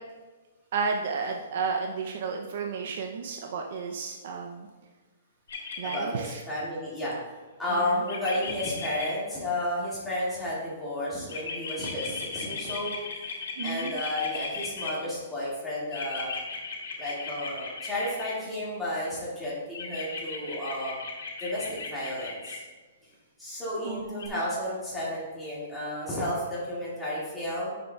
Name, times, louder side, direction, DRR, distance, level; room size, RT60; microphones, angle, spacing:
voice 1, 0.7-4.7 5.8-6.4 7.7-8.0 13.6-14.0 23.8-24.4, right 5 dB, 50° right, 2 dB, 0.6 m, -32 dB
sound 1, 5.5-6.0 8.1-9.0 11.3-14.9 15.9-18.3 19.7-22.6 24.2-24.3, left 5 dB, 85° left, 1.9 m, -36 dB
voice 2, 5.8-7.1 7.6-13.3 13.6-16.3 17.0-21.0 21.4-22.6 23.0-23.1 23.4-27.7, left 1 dB, 5° left, -9 dB, 2.0 m, -32 dB
9.5 x 6.8 x 2.3 m, 1.3 s
hypercardioid pair, 175°, 0 cm